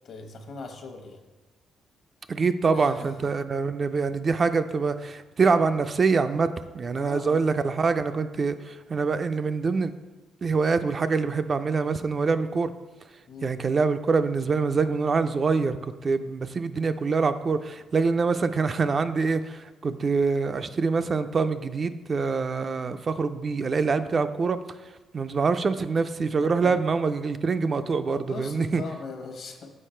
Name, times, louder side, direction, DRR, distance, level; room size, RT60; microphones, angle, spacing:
voice 1, 0.0-1.2 2.7-3.1 6.9-7.4 13.3-13.5 26.4-26.7 28.0-29.7, left 4 dB, 60° left, 5 dB, 1.0 m, -40 dB
voice 2, 2.3-9.9 10.4-12.7 13.4-24.6 25.1-28.8, right 4 dB, 40° right, 10 dB, 0.3 m, -25 dB
6.5 x 4.9 x 4.4 m, 1.2 s
cardioid pair, 90°, 0 cm